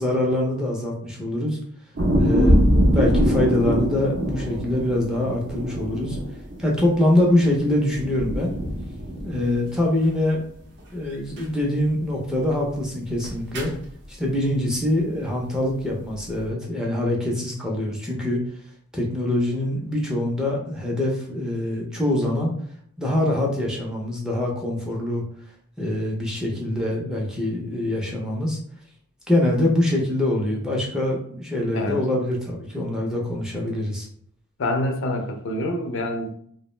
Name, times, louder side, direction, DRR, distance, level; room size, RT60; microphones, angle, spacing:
voice 1, 0.0-1.6 2.2-6.2 6.6-8.5 9.2-10.4 10.9-13.7 14.1-18.4 18.9-22.5 23.0-25.2 25.8-28.6 29.3-34.1, left 1 dB, 5° right, -3 dB, 0.4 m, -24 dB
sound 1, 2.0-7.5 7.9-9.8 10.1-10.2 11.4-11.6 13.2-13.8, equal, 50° right, 0.6 m, -23 dB
voice 2, 34.6-36.3, left 1 dB, 55° left, 4 dB, 0.4 m, -26 dB
2.4 x 2.0 x 3.0 m, 0.63 s
head